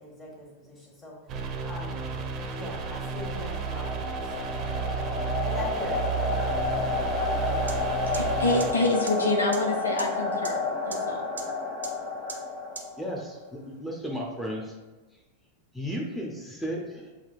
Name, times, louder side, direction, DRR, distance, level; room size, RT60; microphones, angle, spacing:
voice 1, 0.0-2.0 2.5-4.3 5.4-6.0, left 1 dB, 25° left, -2 dB, 1.4 m, -41 dB
sound 1, 1.3-8.7, right 6 dB, 35° right, 0.6 m, -32 dB
sound 2, 2.4-13.3, left 4 dB, 45° left, 1.1 m, -31 dB
sound 3, 7.7-7.8 8.1-8.2 8.6-8.7 9.1-9.2 9.5-9.6 10.0-10.1 10.4-10.5 10.9-11.0 11.4-11.5 11.8-11.9 12.3-12.4 12.7-12.8, right 5 dB, 75° right, 0.6 m, -35 dB
voice 2, 8.1-11.2, left 2 dB, 75° left, 2 dB, 0.5 m, -27 dB
voice 3, 13.0-14.7 15.7-17.1, equal, 5° left, -2 dB, 0.7 m, -34 dB
7.2 x 2.8 x 2.4 m, 1.2 s
figure-of-eight pair, 90°, 0 cm